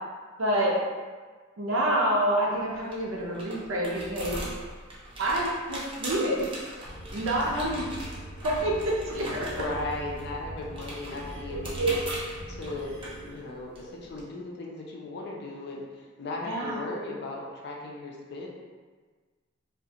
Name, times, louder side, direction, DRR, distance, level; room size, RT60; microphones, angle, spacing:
voice 1, 0.4-0.8 1.6-4.5 5.2-6.5 7.1-7.9 8.4-9.6 11.5-12.0 16.5-16.8, right 1 dB, 75° right, -3 dB, 0.5 m, -27 dB
sound 1, 2.5-14.2, right 1 dB, 25° right, 0.5 m, -41 dB
sound 2, 6.8-13.3, right 1 dB, 5° left, 0.9 m, -42 dB
voice 2, 9.1-12.0 12.5-13.0 13.3-18.5, left 2 dB, 55° left, -2 dB, 0.4 m, -37 dB
2.4 x 2.1 x 2.8 m, 1.4 s
head